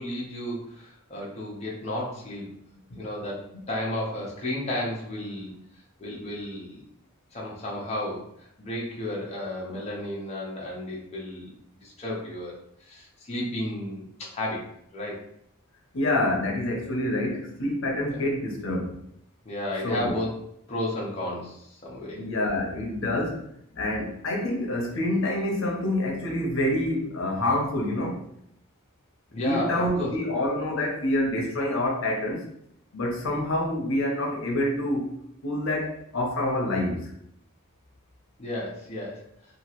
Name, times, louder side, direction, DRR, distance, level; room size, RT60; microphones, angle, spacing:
voice 1, 0.0-2.5 2.9-5.5 6.0-6.8 7.3-11.5 11.8-14.7 14.9-15.2 18.1-18.2 19.4-20.3 20.7-22.2 29.3-30.1 38.4-39.2, left 1 dB, 30° left, -4 dB, 0.6 m, -33 dB
voice 2, 15.9-19.0 19.8-20.2 22.2-23.4 23.8-28.2 29.3-32.5 32.9-35.1 35.4-37.1, left 1 dB, 75° left, -1 dB, 0.7 m, -27 dB
2.9 x 2.3 x 2.9 m, 0.72 s
head